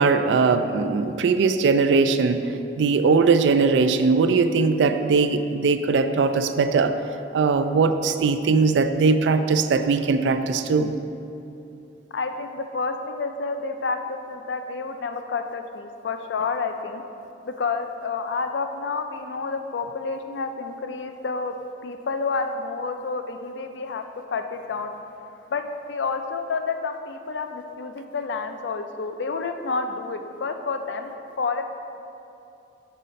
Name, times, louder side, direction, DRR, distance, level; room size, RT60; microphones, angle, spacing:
voice 1, 0.0-2.4 2.8-6.9 7.3-10.9, right 4 dB, 75° right, 9 dB, 0.3 m, -20 dB
voice 2, 12.1-17.0 17.4-21.5 21.8-24.0 24.3-24.9 25.5-31.6, left 4 dB, 70° left, 7 dB, 0.4 m, -29 dB
5.5 x 5.5 x 5.1 m, 2.7 s
head